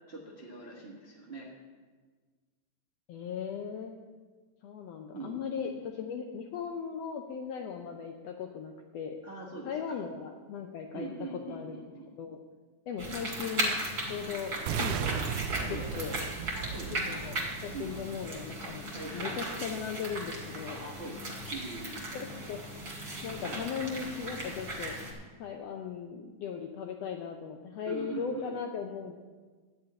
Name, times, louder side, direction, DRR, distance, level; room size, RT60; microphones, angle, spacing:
voice 1, 0.1-1.5 5.1-5.4 9.2-10.0 10.9-12.1 15.7-15.9 16.5-17.2 17.7-17.9 18.9-19.5 20.8-22.1 27.8-28.6, right 3 dB, 55° right, -4 dB, 0.6 m, -42 dB
voice 2, 3.1-4.0 4.6-9.2 9.6-11.1 11.5-11.7 12.2-12.4 12.9-13.8 14.1-15.3 15.6-16.2 16.9-17.4 17.6-20.8 22.1-22.9 23.2-24.9 25.4-29.2, left 6 dB, 85° left, 3 dB, 1.4 m, -38 dB
sound 1, 13.0-25.1, right 1 dB, 35° right, 2.8 m, -37 dB
sound 2, 14.7-18.7, right 8 dB, 80° right, 1.9 m, -36 dB
11.5 x 5.5 x 8.7 m, 1.4 s
omnidirectional pair, 3.6 m